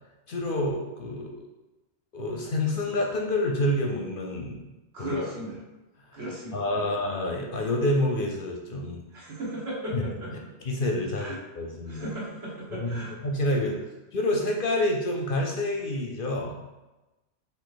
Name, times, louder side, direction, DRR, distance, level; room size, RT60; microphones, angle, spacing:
voice 1, 0.3-1.4 2.1-4.6 5.0-5.1 6.5-9.0 9.9-10.0 10.3-10.4 10.6-12.1 12.8-13.8 14.1-16.6, left 1 dB, 55° left, 1 dB, 0.7 m, -28 dB
voice 2, 4.9-5.6 6.1-6.9 9.1-10.3 11.1-11.4 11.9-13.1, right 1 dB, 65° right, -4 dB, 1.5 m, -36 dB
4.7 x 2.8 x 3.8 m, 1.1 s
omnidirectional pair, 1.2 m